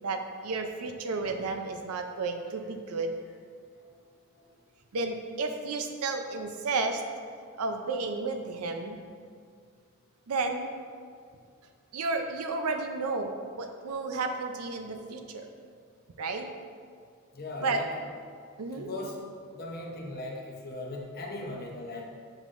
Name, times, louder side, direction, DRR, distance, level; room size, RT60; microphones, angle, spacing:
voice 1, 0.0-3.2 4.9-7.0 7.5-9.0 10.3-10.7 11.9-15.5 16.2-16.5 17.6-17.8 18.6-18.9, right 3 dB, 90° right, 6 dB, 0.5 m, -32 dB
voice 2, 17.3-17.9 18.7-19.2 19.5-22.1, left 2 dB, 45° left, -1 dB, 0.8 m, -38 dB
7.4 x 5.0 x 2.5 m, 2.1 s
head